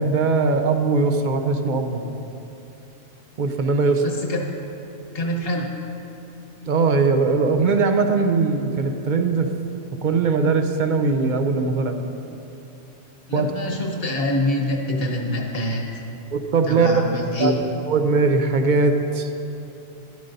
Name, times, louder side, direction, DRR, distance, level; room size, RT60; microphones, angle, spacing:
voice 1, 0.0-2.0 3.4-4.0 6.7-9.5 10.0-12.0 13.3-13.5 16.3-17.0 17.4-17.5 17.9-19.3, right 4 dB, 55° right, 6 dB, 0.6 m, -20 dB
voice 2, 4.0-4.4 5.1-5.7 13.3-15.9 16.7-17.6, left 1 dB, 55° left, 1 dB, 1.3 m, -25 dB
12.5 x 11.5 x 2.7 m, 2.8 s
omnidirectional pair, 1.2 m